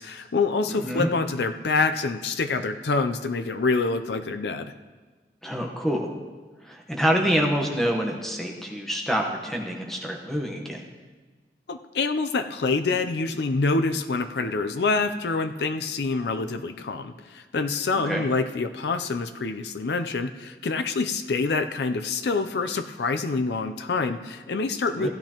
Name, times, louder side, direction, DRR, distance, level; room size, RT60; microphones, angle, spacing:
voice 1, 0.0-4.7 11.7-25.1, left 4 dB, 75° left, 9 dB, 0.5 m, -26 dB
voice 2, 0.7-1.1 5.4-6.1 6.6-10.9 18.0-18.2 25.0-25.1, equal, ahead, 0 dB, 1.0 m, -26 dB
16.0 x 10.5 x 2.9 m, 1.4 s
head